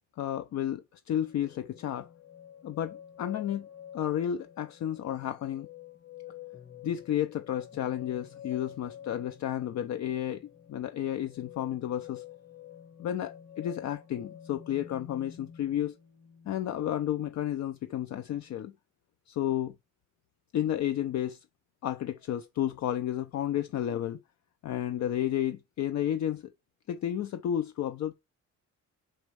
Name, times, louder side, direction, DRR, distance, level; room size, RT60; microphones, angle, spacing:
voice 1, 0.2-2.1 2.6-3.7 3.9-5.7 6.8-12.2 13.0-16.0 16.5-18.7 19.3-19.7 20.5-21.4 21.8-24.2 24.6-26.5 26.9-28.1, left 11 dB, 65° left, 0.6 m, -32 dB
sound 1, 1.1-17.4 17.8-18.5, left 9 dB, 35° left, 1.3 m, -49 dB
5.3 x 4.5 x 4.6 m
cardioid pair, 90°, 30 cm